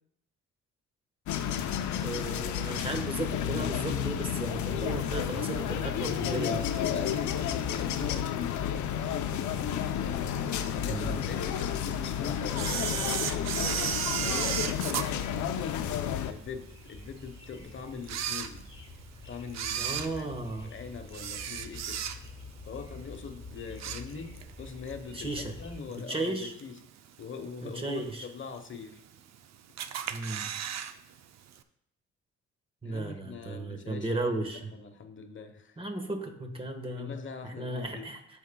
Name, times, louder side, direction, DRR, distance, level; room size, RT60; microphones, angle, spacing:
sound 1, 1.3-16.3, left 9 dB, 75° left, 0.7 m, -31 dB
voice 1, 2.0-6.6 10.9-11.3 19.8-20.7 25.1-25.5 26.1-26.5 27.6-28.3 30.1-30.5 32.8-34.7 35.8-37.1 37.4-38.2, right 2 dB, 20° right, 4 dB, 1.4 m, -35 dB
voice 2, 5.6-9.3 9.7-13.7 14.2-18.6 19.3-20.3 20.6-22.0 22.6-26.8 27.2-29.0 30.0-30.1 32.8-35.8 36.9-38.1, left 5 dB, 40° left, 7 dB, 1.1 m, -42 dB
sound 2, 8.9-25.8, left 2 dB, 20° left, 1.5 m, -48 dB
Camera, 12.5-16.1 16.6-16.7 17.4-17.5 18.0-19.0 19.5-22.5 22.8-23.1 23.5-24.5 24.9-25.0 25.9-26.0 26.6-27.0 27.4-27.5 27.7-27.8 28.0-28.1 28.8-29.4 29.8-30.9 31.2-31.3 31.6-31.7, right 9 dB, 60° right, 0.6 m, -34 dB
13.5 x 5.3 x 2.3 m, 0.75 s
cardioid pair, 90°, 30 cm